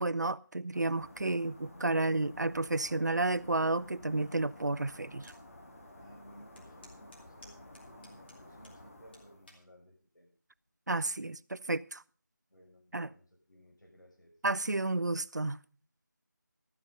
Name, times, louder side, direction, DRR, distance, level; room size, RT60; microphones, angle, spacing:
voice 1, 0.0-5.3 10.9-12.0 12.9-13.1 14.4-15.6, right 2 dB, 65° right, 0.5 m, -31 dB
sound 1, 0.7-9.5, left 1 dB, 45° left, 2.3 m, -52 dB
sound 2, 5.2-5.4 5.9-6.0 6.6-8.8 9.1-9.7 10.4-10.7, left 1 dB, 30° left, 2.4 m, -57 dB
voice 2, 5.9-10.3 12.5-14.3, equal, 80° left, 6.6 m, -58 dB
13.0 x 8.8 x 5.3 m
figure-of-eight pair, 165°, 10 cm